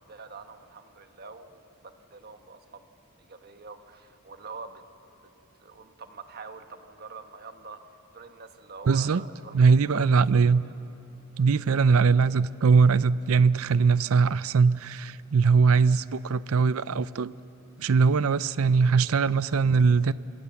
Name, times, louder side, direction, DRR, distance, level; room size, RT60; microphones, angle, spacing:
voice 1, 0.1-2.9 3.2-4.8 5.2-5.3 5.6-7.8 8.1-9.6 9.8-10.1 10.3-10.7 11.3-11.5, right 4 dB, 45° right, 1.3 m, -45 dB
voice 2, 8.9-9.2 9.5-10.6 11.4-17.3 17.8-20.1, right 5 dB, 70° right, 0.5 m, -21 dB
26.5 x 25.5 x 7.1 m
head